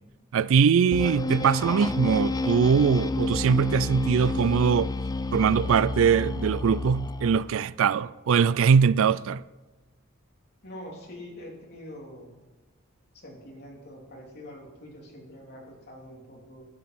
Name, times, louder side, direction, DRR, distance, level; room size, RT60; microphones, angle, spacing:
voice 1, 0.3-4.9 5.3-9.4, right 6 dB, 65° right, 0.4 m, -22 dB
sound 1, 0.9-7.4, left 2 dB, 20° left, 0.5 m, -30 dB
voice 2, 10.6-12.3 13.1-16.7, left 1 dB, 50° left, 3.3 m, -44 dB
13.0 x 10.5 x 5.9 m
head